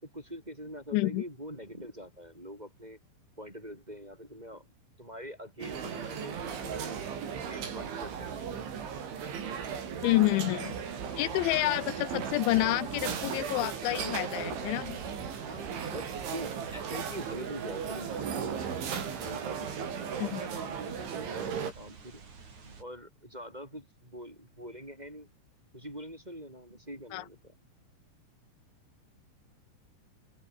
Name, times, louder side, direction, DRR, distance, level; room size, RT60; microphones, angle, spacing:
voice 1, 0.0-3.0 3.4-4.7 5.0-7.0 7.5-8.3 11.0-11.3 15.4-18.5 19.1-22.2 22.8-25.3 25.7-27.5, equal, 10° right, 5.0 m, -44 dB
voice 2, 0.9-1.2 10.0-10.7 11.2-15.0 20.2-20.4 27.1-27.3, left 19 dB, 80° left, 3.0 m, -28 dB
sound 1, 5.6-21.7, right 7 dB, 75° right, 6.8 m, -36 dB
sound 2, 10.7-22.8, right 5 dB, 40° right, 6.1 m, -51 dB
open air
omnidirectional pair, 5.4 m